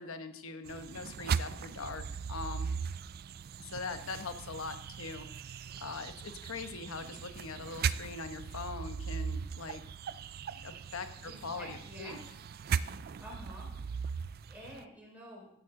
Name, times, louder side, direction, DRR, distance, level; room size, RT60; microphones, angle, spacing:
voice 1, 0.0-2.7 3.6-9.8 10.6-12.2, left 4 dB, 75° left, 8 dB, 1.1 m, -42 dB
sound 1, 0.7-14.8, right 6 dB, 45° right, 0.3 m, -38 dB
voice 2, 11.2-12.2 13.1-13.7 14.5-15.5, equal, 5° right, -4 dB, 4.8 m, -48 dB
15.5 x 9.3 x 3.8 m, 0.74 s
head